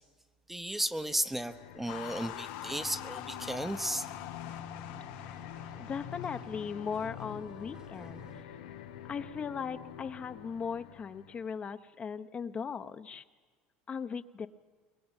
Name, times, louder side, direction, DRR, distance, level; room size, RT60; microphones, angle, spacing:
voice 1, 0.5-4.1, right 1 dB, 5° right, 0.9 m, -34 dB
sound 1, 1.2-11.7, left 11 dB, 90° left, 1.0 m, -47 dB
sound 2, 1.9-7.1, left 14 dB, 70° left, 1.1 m, -45 dB
sound 3, 2.8-8.5, right 5 dB, 20° right, 1.3 m, -53 dB
voice 2, 5.8-8.2 9.1-13.2 13.9-14.5, left 6 dB, 30° left, 1.0 m, -38 dB
22.0 x 22.0 x 9.0 m
supercardioid pair, 105°, 4 cm